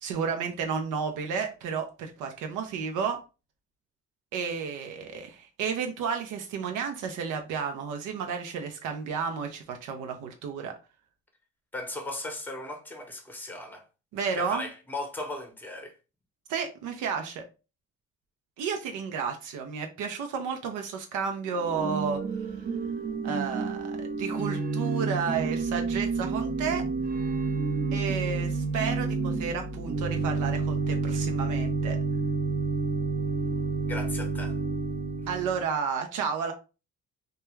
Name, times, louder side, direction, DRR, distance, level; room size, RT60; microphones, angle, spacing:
voice 1, 0.0-3.2 4.3-10.7 14.1-14.7 16.5-17.4 18.6-22.6 23.2-26.8 27.9-32.0 35.3-36.5, right 6 dB, 90° right, 0.5 m, -32 dB
voice 2, 11.7-13.8 14.3-15.9 33.9-34.6, left 2 dB, 5° left, 0.7 m, -37 dB
Organ / Church bell, 21.5-35.7, right 4 dB, 35° right, 0.4 m, -29 dB
2.2 x 2.2 x 3.0 m
cardioid pair, 90°, 30 cm